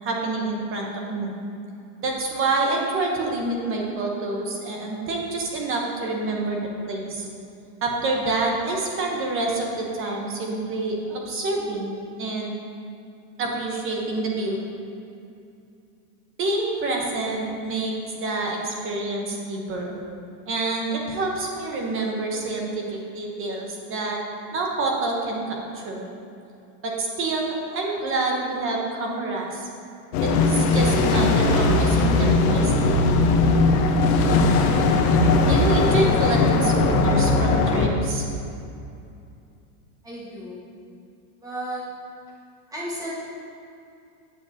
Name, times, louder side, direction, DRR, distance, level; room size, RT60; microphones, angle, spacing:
voice 1, 0.0-1.3 2.0-7.3 7.8-11.9 12.2-12.5 13.4-14.6 16.4-17.9 18.2-19.9 20.5-24.2 24.5-26.1 26.8-29.7 30.2-33.0 35.5-38.2, right 2 dB, 25° right, 0 dB, 1.0 m, -27 dB
sound 1, 30.1-37.9, left 3 dB, 70° left, 0.8 m, -19 dB
voice 2, 40.0-40.6 41.4-41.8 42.7-43.1, right 1 dB, 5° right, -6 dB, 1.4 m, -33 dB
8.6 x 6.5 x 2.8 m, 2.5 s
supercardioid pair, 145°, 47 cm